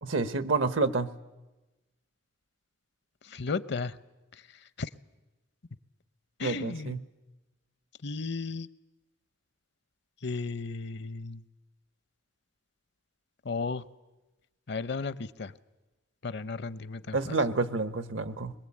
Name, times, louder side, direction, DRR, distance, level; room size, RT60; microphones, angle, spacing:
voice 1, 0.0-1.1 6.4-7.0 17.1-18.5, right 3 dB, 75° right, 13 dB, 1.0 m, -28 dB
voice 2, 3.2-4.0 4.3-4.9 6.4-7.0 8.0-8.7 10.2-11.4 13.4-13.8 14.7-15.5 16.2-17.4, left 4 dB, 60° left, 16 dB, 0.7 m, -35 dB
22.0 x 21.0 x 8.6 m, 1.1 s
head